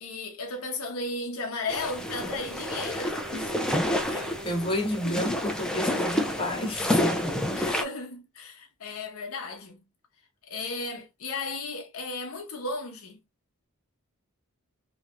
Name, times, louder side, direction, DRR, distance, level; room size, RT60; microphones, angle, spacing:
voice 1, 0.0-3.2 4.4-4.7 5.0-5.5 7.5-9.8 10.4-13.2, left 3 dB, 70° left, 0.8 m, -35 dB
sound 1, 1.7-7.8, left 1 dB, 5° left, 0.4 m, -29 dB
Wind instrument woodwind instrument, 1.9-5.4, right 1 dB, 40° right, 0.8 m, -45 dB
voice 2, 3.9-7.0, left 1 dB, 25° left, 1.1 m, -31 dB
3.1 x 2.8 x 2.4 m
head